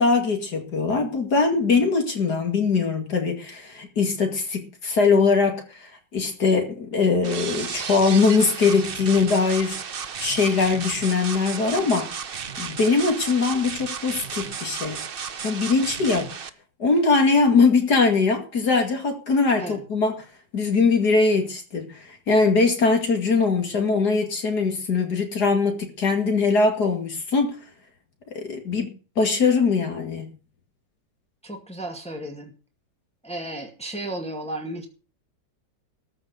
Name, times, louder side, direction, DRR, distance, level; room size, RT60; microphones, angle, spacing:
voice 1, 0.0-5.6 6.1-9.8 10.2-12.1 12.6-15.0 15.4-16.3 16.8-20.1 20.5-22.0 22.3-27.6 28.3-30.3, left 4 dB, 60° left, 2.9 m, -21 dB
sound 1, 7.2-16.5, right 6 dB, 45° right, 0.8 m, -33 dB
voice 2, 31.4-32.5 33.2-34.9, right 1 dB, 5° left, 2.1 m, -34 dB
14.0 x 5.5 x 9.3 m
omnidirectional pair, 1.9 m